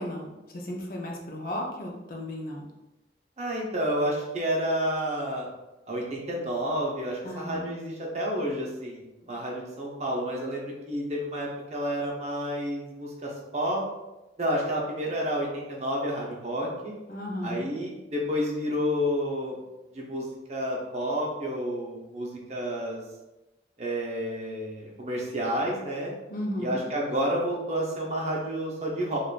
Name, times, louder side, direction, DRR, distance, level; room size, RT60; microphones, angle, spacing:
voice 1, 0.0-2.7 7.2-7.8 17.1-17.7 26.3-26.8, left 1 dB, 50° left, 0 dB, 0.5 m, -34 dB
voice 2, 3.4-5.5 5.9-13.8 14.4-16.9 17.4-19.5 19.9-23.0 23.8-26.1 26.6-29.2, equal, 40° right, -2 dB, 0.6 m, -30 dB
3.5 x 2.4 x 2.4 m, 1.0 s
head